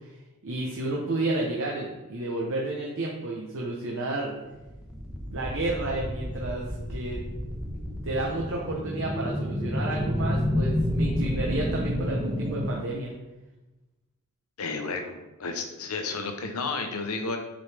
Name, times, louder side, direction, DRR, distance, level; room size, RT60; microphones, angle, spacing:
voice 1, 0.4-4.3 5.3-7.2 8.0-13.1, right 2 dB, 60° right, -2 dB, 1.0 m, -31 dB
sound 1, 4.5-12.7, equal, 5° right, 1.1 m, -30 dB
voice 2, 14.6-17.4, left 3 dB, 75° left, 5 dB, 0.9 m, -32 dB
7.7 x 4.9 x 3.5 m, 1.1 s
head